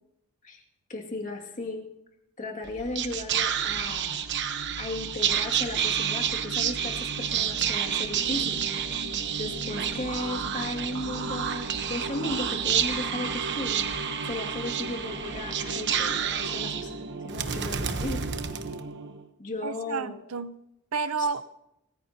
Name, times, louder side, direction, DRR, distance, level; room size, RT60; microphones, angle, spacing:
voice 1, 0.9-1.9 2.4-4.2 4.5-8.6 9.3-16.9 17.2-18.2 19.4-20.2 21.2-21.3, left 2 dB, 35° left, 2.3 m, -36 dB
Whispering, 2.6-19.2, right 7 dB, 55° right, 1.1 m, -29 dB
Bowed string instrument, 11.1-16.6, equal, 15° right, 4.3 m, -50 dB
voice 2, 19.6-20.6 20.9-21.4, right 4 dB, 70° right, 0.6 m, -30 dB
27.0 x 15.5 x 2.9 m
head